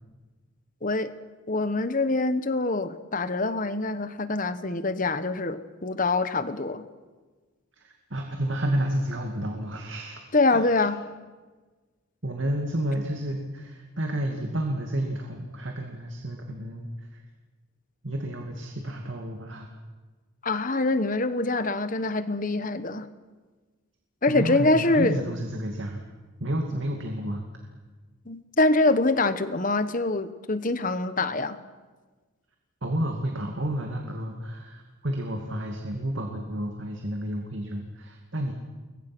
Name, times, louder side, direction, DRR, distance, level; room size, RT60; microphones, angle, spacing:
voice 1, 0.8-1.1 1.5-6.9 10.3-11.0 20.4-23.1 24.2-25.2 28.3-31.6, left 2 dB, 40° left, 12 dB, 1.1 m, -25 dB
voice 2, 7.7-10.2 10.5-10.9 12.2-17.2 18.0-19.7 24.3-26.0 26.4-27.4 32.8-38.5, right 1 dB, 60° right, 2 dB, 2.4 m, -31 dB
29.5 x 22.5 x 6.1 m, 1.3 s
head